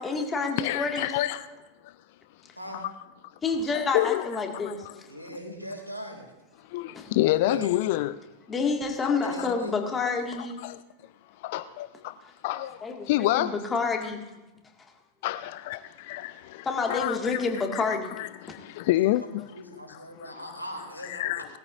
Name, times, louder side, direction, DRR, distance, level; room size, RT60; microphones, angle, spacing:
voice 1, 0.0-1.1 3.4-4.8 6.9-7.1 8.5-10.6 12.8-14.2 16.6-18.1 18.5-18.6, left 4 dB, 20° left, 2.1 m, -28 dB
voice 2, 0.6-1.5 3.7-4.3 4.5-4.9 6.7-8.1 9.0-9.5 10.6-10.8 11.4-12.1 12.4-12.8 13.1-13.5 15.2-17.4 17.7-19.5 21.0-21.5, left 16 dB, 50° left, 0.4 m, -28 dB
voice 3, 5.1-6.3 7.3-7.8 9.2-9.7 19.2-21.3, equal, 90° right, 2.5 m, -39 dB
20.0 x 13.5 x 2.6 m
figure-of-eight pair, 90°, 0 cm